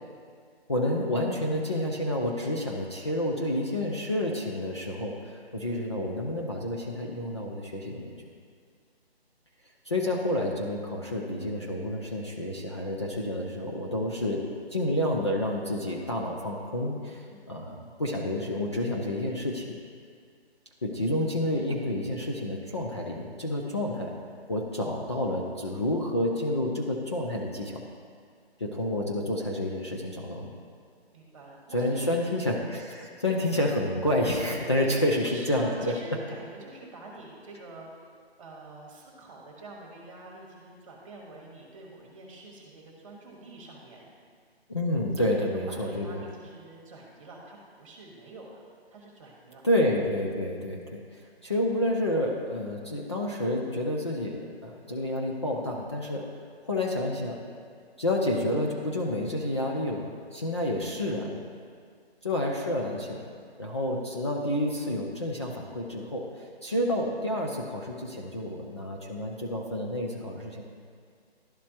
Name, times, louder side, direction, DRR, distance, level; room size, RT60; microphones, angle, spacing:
voice 1, 0.7-8.2 9.9-14.4 14.7-17.2 17.5-19.8 20.8-24.1 24.5-27.8 28.6-30.5 31.7-35.9 44.7-46.2 49.6-56.2 56.6-57.4 58.0-61.4 62.2-63.3 63.6-70.6, left 1 dB, 25° left, -2 dB, 0.5 m, -29 dB
voice 2, 31.1-32.3 34.7-34.9 35.2-37.9 38.4-44.1 45.2-49.7, right 2 dB, 30° right, -2 dB, 1.4 m, -46 dB
12.0 x 4.2 x 2.8 m, 2.1 s
figure-of-eight pair, 160°, 32 cm